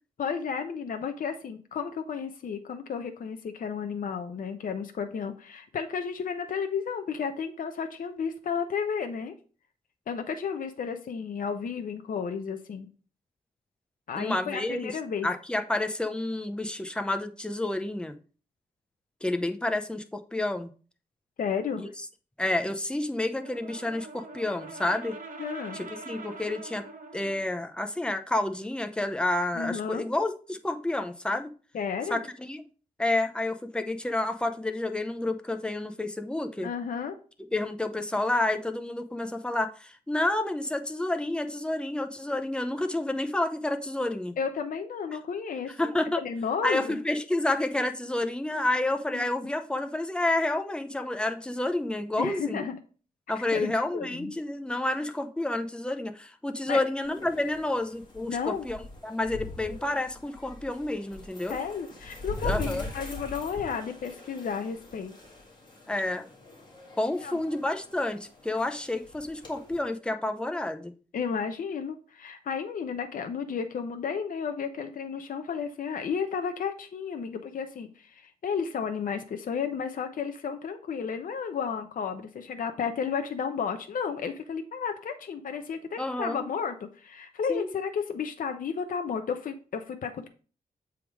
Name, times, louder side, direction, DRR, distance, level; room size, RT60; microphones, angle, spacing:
voice 1, 0.2-9.4 10.1-12.9 14.1-15.3 21.4-21.9 25.4-25.8 29.5-30.0 31.7-32.2 36.6-37.2 44.4-45.7 46.0-47.0 49.1-49.2 52.2-52.7 53.3-54.3 56.7-56.8 58.2-58.7 61.5-65.1 67.1-67.4 71.1-90.3, left 6 dB, 60° left, 6 dB, 0.6 m, -33 dB
voice 2, 14.1-14.9 15.2-18.2 19.2-20.7 21.8-21.9 22.4-25.1 25.7-26.8 27.1-31.5 32.1-32.6 33.0-36.7 37.5-44.4 45.8-46.2 46.6-52.6 53.3-61.6 62.4-62.9 65.9-66.3 67.0-70.9 86.0-86.4 87.5-87.7, left 2 dB, 5° left, 7 dB, 0.6 m, -29 dB
Brass instrument, 23.3-27.5, right 3 dB, 60° right, 1.2 m, -44 dB
sound 1, 57.0-69.8, left 2 dB, 30° left, 2.0 m, -42 dB
7.4 x 3.6 x 4.6 m, 0.38 s
wide cardioid pair, 120°, 15 cm